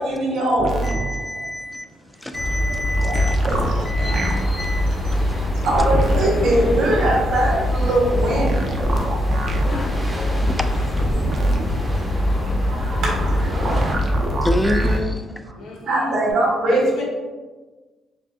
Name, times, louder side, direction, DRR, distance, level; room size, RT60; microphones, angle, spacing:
voice 1, 0.0-1.4 2.8-2.9 3.3-3.7 4.0-8.6 11.9-14.0 15.8-16.8, right 1 dB, 85° right, -4 dB, 1.3 m, -23 dB
sound 1, 0.6-1.0 3.0-4.3 5.6-6.3 8.3-9.7 11.0-11.7 13.6-15.0 16.3-16.4, right 2 dB, 50° right, 0.6 m, -26 dB
voice 2, 0.8-1.9 2.2-3.5 3.8-4.9 10.5-10.6 14.4-15.5, left 1 dB, 10° left, 7 dB, 0.3 m, -28 dB
sound 2, 2.3-15.0, left 1 dB, 45° left, 0.7 m, -23 dB
voice 3, 3.1-3.6 3.9-4.3 9.5-9.6 10.2-10.5 15.6-16.2 16.7-17.0, left 2 dB, 80° left, -3 dB, 1.0 m, -31 dB
sound 3, 4.1-14.0, equal, 15° right, 0.7 m, -33 dB
4.7 x 2.4 x 2.6 m, 1.3 s
cardioid pair, 90°, 0 cm